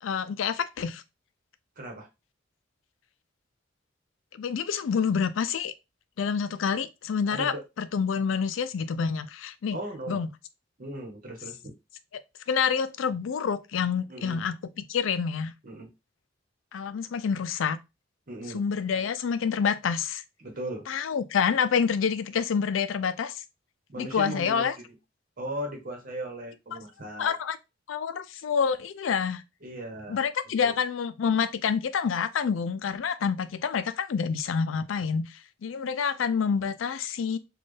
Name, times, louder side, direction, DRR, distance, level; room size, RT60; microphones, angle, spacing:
voice 1, 0.0-1.0 4.3-5.7 6.2-9.8 10.1-10.3 12.5-15.5 16.7-17.8 18.5-20.2 20.9-23.4 24.0-24.7 26.7-26.8 27.2-27.6 27.9-29.4 30.1-37.4, left 6 dB, 85° left, 0.4 m, -27 dB
voice 2, 1.8-2.1 7.3-7.6 9.7-10.2 10.8-11.7 14.1-14.4 15.6-15.9 18.3-18.6 20.4-20.9 23.9-24.9 25.4-27.4 29.6-30.3 30.6-30.8, right 1 dB, 45° right, 1.2 m, -37 dB
4.2 x 2.4 x 3.2 m
head